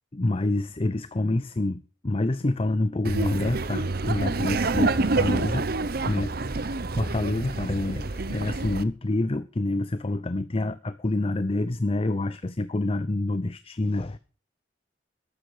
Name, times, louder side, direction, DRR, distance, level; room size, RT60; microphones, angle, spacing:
voice 1, 0.1-5.7 6.0-14.2, left 2 dB, 30° left, 13 dB, 0.6 m, -27 dB
Laughter, 3.0-8.8, right 3 dB, 55° right, 0.9 m, -27 dB
14.5 x 11.5 x 4.9 m, 0.37 s
head